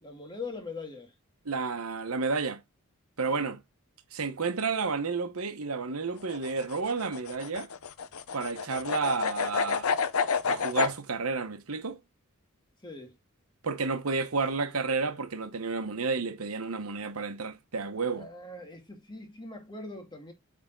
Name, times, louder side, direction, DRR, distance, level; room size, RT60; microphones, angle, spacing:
voice 1, 0.0-1.1 3.3-3.5 12.8-13.2 18.1-20.3, left 3 dB, 20° left, 1.8 m, -42 dB
voice 2, 1.4-2.6 3.2-3.6 4.1-7.7 8.3-9.9 10.5-12.0 13.6-18.3, right 4 dB, 75° right, 1.0 m, -31 dB
sound 1, 6.2-11.0, left 5 dB, 70° left, 0.7 m, -29 dB
8.6 x 3.5 x 3.8 m
head